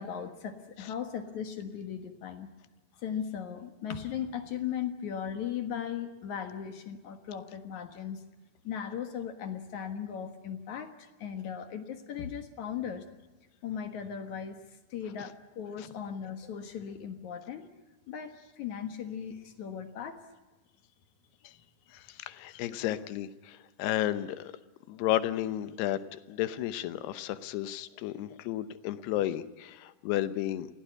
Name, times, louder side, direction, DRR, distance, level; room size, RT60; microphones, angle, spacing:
voice 1, 0.0-2.5 3.0-8.2 8.6-13.1 13.6-14.6 14.9-17.6 18.1-20.2, left 8 dB, 60° left, 7 dB, 2.4 m, -37 dB
voice 2, 21.9-24.5 24.9-30.7, left 13 dB, 85° left, 13 dB, 3.0 m, -33 dB
23.5 x 16.5 x 9.8 m, 1.2 s
omnidirectional pair, 4.6 m